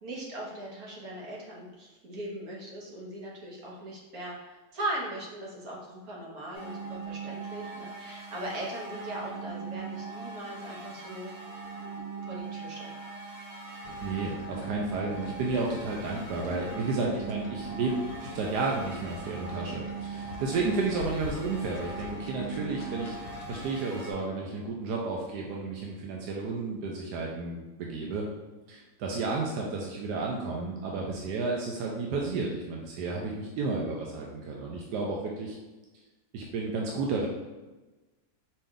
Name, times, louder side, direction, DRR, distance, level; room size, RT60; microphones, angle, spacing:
voice 1, 0.0-11.3 12.2-13.0, right 1 dB, 65° right, -4 dB, 1.6 m, -39 dB
sound 1, 6.5-24.1, right 5 dB, 30° right, 1.0 m, -40 dB
sound 2, 13.8-23.8, left 4 dB, 80° left, 1.1 m, -45 dB
voice 2, 14.0-17.9 18.2-23.2 23.5-28.2 28.7-35.6 36.3-37.3, right 3 dB, 85° right, -1 dB, 1.2 m, -32 dB
4.3 x 3.2 x 3.6 m, 1.1 s
omnidirectional pair, 1.7 m